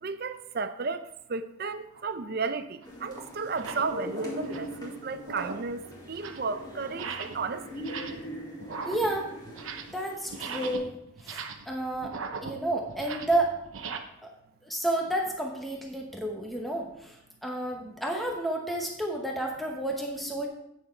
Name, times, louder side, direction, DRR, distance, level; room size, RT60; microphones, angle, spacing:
voice 1, 0.0-7.9, right 4 dB, 50° right, 0.5 m, -34 dB
sound 1, 1.9-2.1 2.8-2.9 3.5-3.9 4.3-4.8 5.2-5.7 6.0-6.5 6.9-7.5 7.7-8.3 8.6-10.0 10.3-14.0, right 5 dB, 85° right, 0.8 m, -39 dB
sound 2, 2.8-10.8, equal, 20° left, 1.9 m, -41 dB
voice 2, 8.8-9.3 9.7-10.9 11.2-12.1 12.4-13.5 14.6-20.5, right 1 dB, ahead, 0.9 m, -31 dB
8.9 x 6.2 x 4.4 m
head